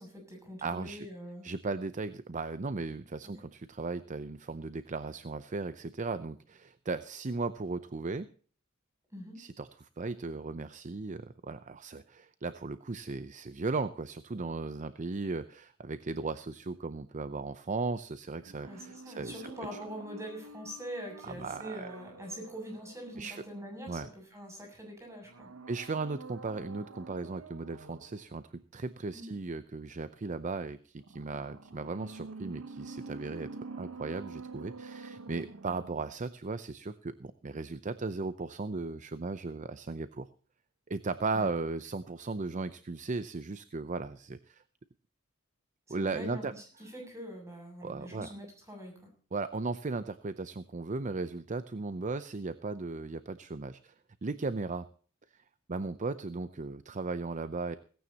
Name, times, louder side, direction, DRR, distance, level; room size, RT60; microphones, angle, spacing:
voice 1, 0.0-1.4 3.3-3.4 9.1-9.4 18.6-25.5 29.1-29.3 41.3-41.5 45.9-49.1, equal, 15° right, 2 dB, 7.2 m, -44 dB
voice 2, 0.6-1.1 1.4-8.3 9.4-19.5 21.2-21.9 23.2-23.4 23.9-24.1 25.7-33.5 33.8-40.3 40.9-44.6 45.9-46.5 47.8-48.3 49.3-53.9 54.2-54.9 55.7-57.8, right 3 dB, 35° right, 13 dB, 0.6 m, -36 dB
sound 1, 18.4-24.2 25.2-28.3 31.0-36.2 36.5-36.6, right 3 dB, 80° right, 1.0 m, -47 dB
17.5 x 15.5 x 2.9 m, 0.41 s
head